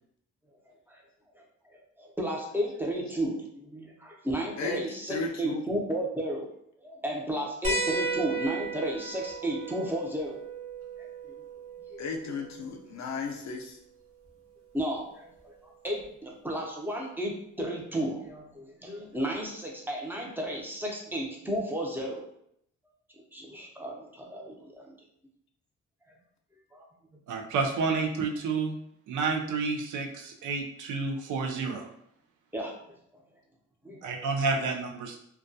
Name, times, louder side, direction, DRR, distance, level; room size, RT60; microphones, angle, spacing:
voice 1, 1.3-6.5 6.8-10.4 11.0-11.4 11.9-12.0 14.7-22.2 23.3-25.0 26.1-26.2 26.7-26.9 27.1-27.2 32.5-32.8 33.8-34.1, equal, 5° right, -1 dB, 0.6 m, -33 dB
voice 2, 4.6-5.6 12.0-13.8, left 4 dB, 65° left, 2 dB, 0.5 m, -35 dB
sound 1, 7.6-12.7 14.3-14.4 16.0-16.1, right 4 dB, 45° right, 0.8 m, -35 dB
voice 3, 27.3-28.7 29.1-31.9 34.0-35.2, right 4 dB, 90° right, 2 dB, 0.5 m, -30 dB
2.2 x 2.2 x 2.6 m, 0.74 s
cardioid pair, 80°, 29 cm